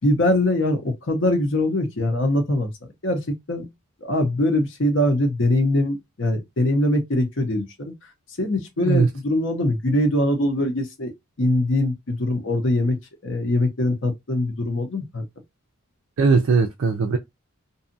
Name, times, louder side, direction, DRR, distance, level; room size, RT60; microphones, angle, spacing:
voice 1, 0.0-2.7 3.0-3.7 4.0-7.9 8.4-11.1 11.4-13.0 13.2-15.2, left 1 dB, 60° left, 0.8 m, -22 dB
voice 2, 16.2-17.2, right 4 dB, 65° right, 0.4 m, -19 dB
2.6 x 2.3 x 2.6 m
head